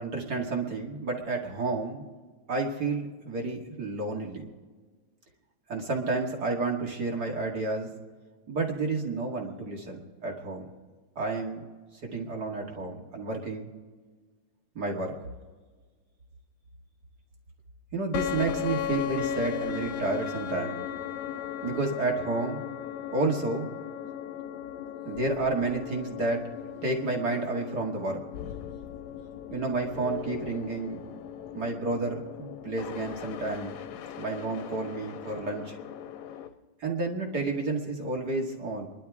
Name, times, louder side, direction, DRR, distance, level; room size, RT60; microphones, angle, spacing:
voice 1, 0.0-2.1 2.5-4.5 5.7-7.9 8.5-10.7 11.2-11.7 12.0-13.7 14.8-15.1 17.9-20.9 21.6-22.6 23.1-23.7 25.1-28.2 29.5-31.1 31.5-33.7 34.2-35.8 36.8-38.9, right 3 dB, 35° right, 0 dB, 2.1 m, -31 dB
sound 1, 18.1-36.5, left 9 dB, 75° left, 2.2 m, -37 dB
29.5 x 11.5 x 3.6 m, 1.4 s
omnidirectional pair, 3.5 m